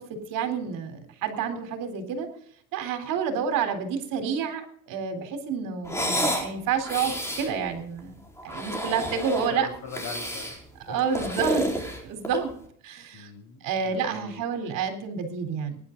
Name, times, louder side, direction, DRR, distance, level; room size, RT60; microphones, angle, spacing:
voice 1, 0.1-2.3 2.7-9.7 10.9-11.7 12.0-12.5 12.8-13.3 13.6-15.8, right 6 dB, 65° right, 7 dB, 3.9 m, -29 dB
sound 1, 5.8-6.5 6.8-7.5 8.4-9.5 9.9-10.6 11.0-12.5, equal, 5° left, 4.3 m, -30 dB
voice 2, 9.4-10.6 10.9-11.6 13.1-14.5, left 5 dB, 65° left, 3 dB, 7.1 m, -41 dB
23.5 x 11.5 x 4.0 m, 0.62 s
cardioid pair, 135°, 36 cm